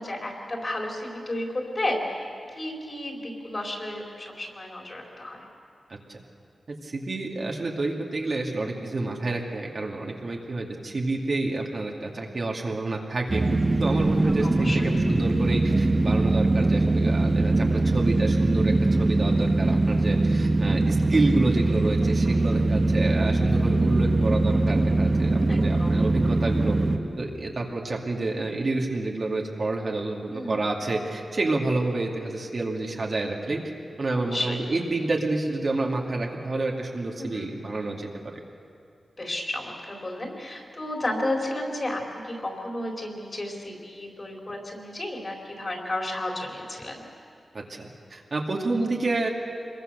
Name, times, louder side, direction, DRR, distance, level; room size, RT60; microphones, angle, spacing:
voice 1, 0.0-2.3 2.5-5.5 14.4-14.9 20.6-21.0 25.5-26.0 30.3-30.6 34.1-34.6 37.2-37.6 39.2-47.1, left 1 dB, 35° left, 0 dB, 4.1 m, -33 dB
voice 2, 6.8-13.4 13.8-26.8 27.2-33.6 34.0-38.1 47.5-49.3, right 2 dB, 45° right, -1 dB, 2.4 m, -29 dB
sound 1, 13.3-27.0, right 2 dB, 30° right, 1.8 m, -22 dB
26.5 x 22.0 x 6.8 m, 2.4 s
wide cardioid pair, 125°, 0 cm